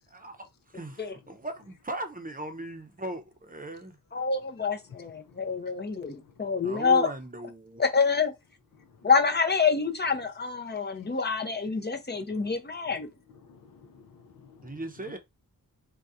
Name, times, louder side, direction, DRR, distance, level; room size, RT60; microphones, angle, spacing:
voice 1, 0.1-4.0 6.6-7.8 14.6-15.2, right 1 dB, 25° right, 0.7 m, -38 dB
voice 2, 4.1-7.1 7.8-8.3 9.0-13.1, left 5 dB, 30° left, 0.6 m, -26 dB
voice 3, 8.8-9.1 12.1-12.6 12.9-13.0 13.4-14.7 15.1-15.2, left 5 dB, 65° left, 0.5 m, -54 dB
3.9 x 2.3 x 2.5 m
wide cardioid pair, 65°, 35 cm